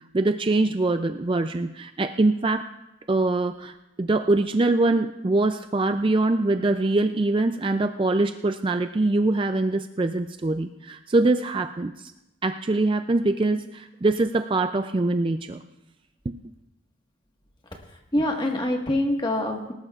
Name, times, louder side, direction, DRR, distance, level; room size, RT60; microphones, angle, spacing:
voice 1, 0.1-2.7 3.1-3.7 4.0-11.9 12.4-15.6 16.3-16.4, right 2 dB, 25° right, 8 dB, 0.4 m, -23 dB
voice 2, 17.9-19.7, left 1 dB, 25° left, 2 dB, 1.5 m, -25 dB
20.0 x 18.5 x 2.4 m, 0.93 s
head